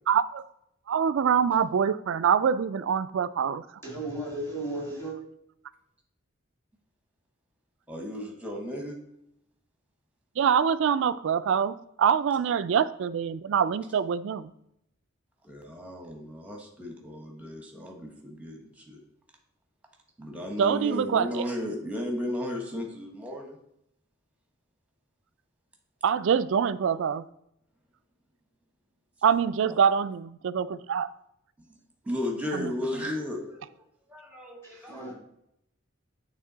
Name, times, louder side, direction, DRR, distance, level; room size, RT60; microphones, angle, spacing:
voice 1, 0.1-0.4 0.9-3.6 10.4-14.5 20.6-21.4 26.0-27.2 29.2-31.1 32.5-32.7, right 7 dB, 65° right, 14 dB, 0.3 m, -25 dB
voice 2, 3.8-5.2 34.6-35.1, right 1 dB, 10° left, -3 dB, 2.0 m, -35 dB
voice 3, 7.9-9.0 15.4-19.0 20.2-23.6 29.7-29.8 31.6-31.7 32.0-33.6 34.1-35.1, left 1 dB, 5° right, 2 dB, 1.1 m, -35 dB
8.8 x 3.5 x 3.9 m, 0.76 s
head